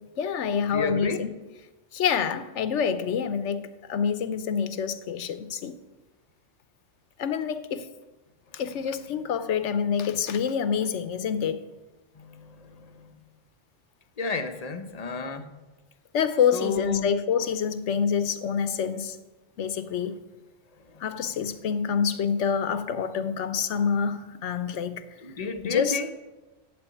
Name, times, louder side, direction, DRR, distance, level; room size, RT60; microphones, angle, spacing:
voice 1, 0.2-1.3 1.9-5.8 7.2-7.9 8.5-11.6 16.1-19.2 19.6-20.1 21.0-25.0 25.6-26.0, left 7 dB, 75° left, 12 dB, 1.0 m, -27 dB
voice 2, 0.7-1.2 8.5-8.6 12.1-13.2 14.2-15.5 16.5-17.1 20.7-21.6 25.2-26.1, left 4 dB, 35° left, 8 dB, 0.8 m, -33 dB
8.8 x 7.7 x 8.3 m, 1.2 s
omnidirectional pair, 1.3 m